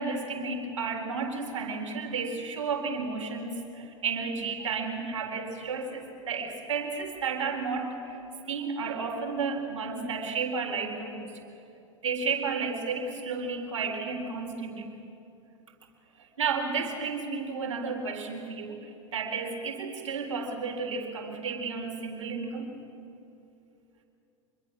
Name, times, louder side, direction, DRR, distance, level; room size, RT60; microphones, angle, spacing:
voice 1, 0.0-8.2 8.5-11.3 12.0-14.9 16.4-22.7, right 5 dB, 65° right, 2 dB, 3.9 m, -32 dB
25.5 x 22.0 x 7.4 m, 2.8 s
figure-of-eight pair, 95°, 17 cm